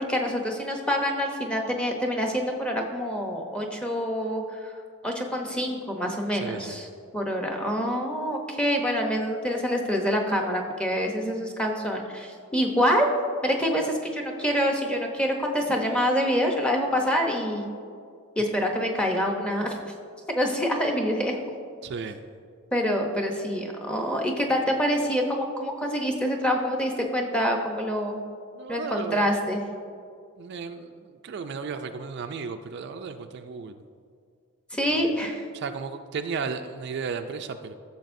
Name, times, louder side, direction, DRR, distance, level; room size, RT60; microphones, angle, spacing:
voice 1, 0.0-4.7 5.0-6.9 7.1-13.1 13.4-17.7 18.4-19.8 20.3-21.4 22.7-28.2 28.7-29.6 34.7-35.4, equal, 5° left, 1 dB, 0.7 m, -26 dB
voice 2, 6.4-6.8 21.8-22.2 28.6-29.2 30.4-33.7 35.0-35.1 35.5-37.7, right 5 dB, 50° right, 7 dB, 0.3 m, -34 dB
13.0 x 7.0 x 2.6 m, 2.2 s
head